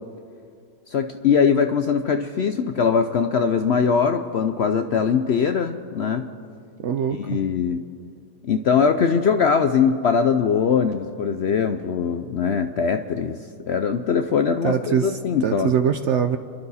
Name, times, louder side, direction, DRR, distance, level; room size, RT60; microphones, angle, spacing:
voice 1, 0.9-6.3 7.1-7.8 8.4-13.4 13.7-15.7, left 6 dB, 65° left, 7 dB, 0.7 m, -21 dB
voice 2, 6.8-7.4 14.6-16.4, right 8 dB, 65° right, 9 dB, 0.7 m, -23 dB
29.0 x 12.0 x 4.2 m, 2.4 s
omnidirectional pair, 1.7 m